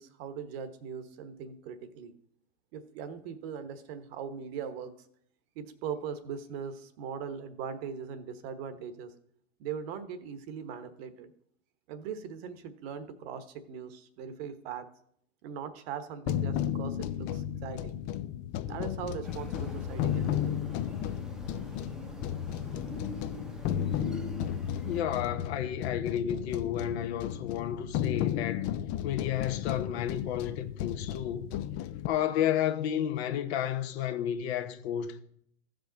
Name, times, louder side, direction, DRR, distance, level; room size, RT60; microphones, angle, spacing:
voice 1, 0.0-2.1 2.7-5.0 5.5-9.1 9.6-11.3 11.9-14.9 15.4-18.0 18.7-20.6, right 7 dB, 55° right, 1.1 m, -40 dB
sound 1, 16.3-32.1, left 10 dB, 30° left, 0.4 m, -34 dB
sound 2, 19.2-25.0, right 1 dB, ahead, 0.8 m, -44 dB
voice 2, 24.8-28.7 29.0-31.5 32.1-35.2, left 10 dB, 55° left, 1.0 m, -31 dB
15.0 x 5.2 x 3.9 m
hypercardioid pair, 120°, 37 cm